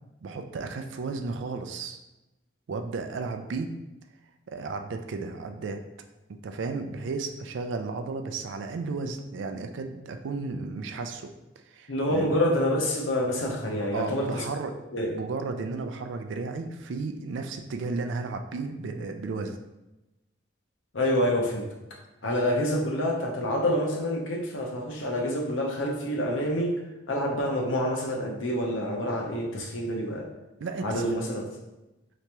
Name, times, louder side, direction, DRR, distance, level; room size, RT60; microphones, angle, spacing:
voice 1, 0.2-2.0 2.7-3.7 4.5-5.8 6.4-11.3 11.7-12.3 13.9-14.7 15.0-19.6 30.6-31.0, right 4 dB, 75° right, 6 dB, 0.4 m, -33 dB
voice 2, 11.9-14.5 14.9-15.1 20.9-21.7 22.2-26.8 27.1-30.3 30.8-31.5, left 1 dB, 85° left, -1 dB, 0.8 m, -27 dB
3.3 x 2.9 x 2.9 m, 1.0 s
head